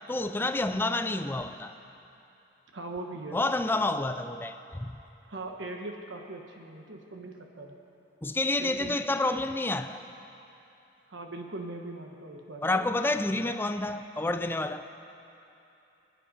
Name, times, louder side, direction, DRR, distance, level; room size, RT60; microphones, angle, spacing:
voice 1, 0.1-1.7 3.3-5.0 8.2-10.0 12.6-14.8, left 2 dB, 10° left, 9 dB, 0.4 m, -29 dB
voice 2, 2.7-3.4 5.3-7.8 8.6-9.0 11.1-12.8, right 2 dB, 70° right, 2 dB, 1.2 m, -40 dB
26.5 x 10.0 x 5.1 m, 2.9 s
head